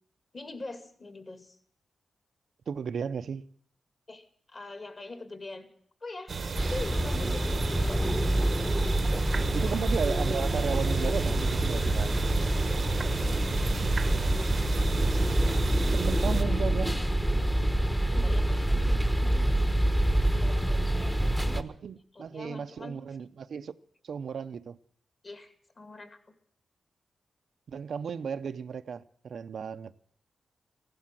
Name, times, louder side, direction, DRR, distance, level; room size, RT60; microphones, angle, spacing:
voice 1, 0.3-1.6 4.1-5.7 6.0-6.3 6.7-8.0 12.7-13.0 13.8-14.5 18.1-19.8 20.3-21.7 22.1-23.0 25.2-26.2, left 2 dB, 35° left, 2.3 m, -43 dB
voice 2, 2.7-3.4 9.5-12.2 15.9-17.0 21.5-23.7 24.0-24.8 27.7-29.9, right 6 dB, 70° right, 0.6 m, -34 dB
sound 1, 6.3-16.4, right 5 dB, 50° right, 0.9 m, -33 dB
sound 2, 6.6-21.6, right 1 dB, 5° left, 1.0 m, -27 dB
16.0 x 11.5 x 7.4 m
wide cardioid pair, 140°, 0 cm